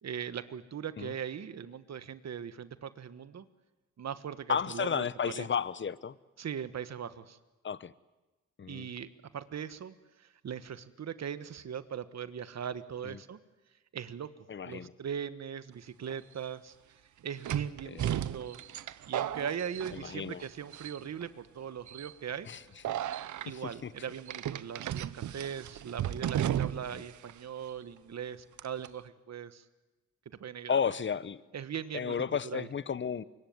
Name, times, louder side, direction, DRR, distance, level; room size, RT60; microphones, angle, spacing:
voice 1, 0.0-3.4 4.0-5.0 5.3-5.5 6.4-7.4 8.7-13.4 13.9-14.3 14.6-16.7 17.2-18.6 19.1-22.5 23.4-29.6 30.4-30.8 31.5-32.2 32.4-32.7, right 8 dB, 65° right, 13 dB, 1.4 m, -40 dB
voice 2, 4.5-6.2 7.6-7.9 8.6-8.9 14.5-14.9 17.9-18.1 19.9-20.4 22.5-22.6 23.5-23.9 26.9-27.0 30.7-31.4 31.9-33.2, left 7 dB, 40° left, 18 dB, 0.9 m, -33 dB
sound 1, 16.1-16.2 17.4-20.4 20.7-21.2 21.9-22.1 22.8-23.5 24.3-27.0 27.3-27.4 28.6-28.9, right 11 dB, 80° right, 0.8 m, -34 dB
24.5 x 23.0 x 9.5 m, 1.1 s
cardioid pair, 85°, 29 cm